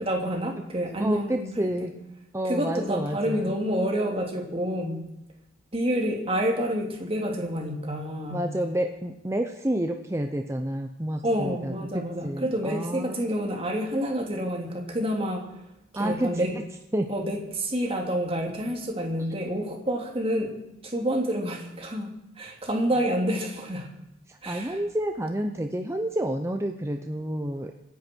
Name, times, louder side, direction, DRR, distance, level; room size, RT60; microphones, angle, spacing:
voice 1, 0.0-1.7 2.4-5.0 5.7-8.5 11.2-15.5 15.9-16.5 17.1-23.9 24.4-24.8, equal, 30° right, 1 dB, 2.9 m, -28 dB
voice 2, 1.0-1.9 2.3-3.5 8.3-13.2 15.9-16.6 16.9-17.1 24.3-27.7, right 1 dB, 15° right, 4 dB, 0.8 m, -29 dB
25.5 x 10.5 x 4.6 m, 0.88 s
head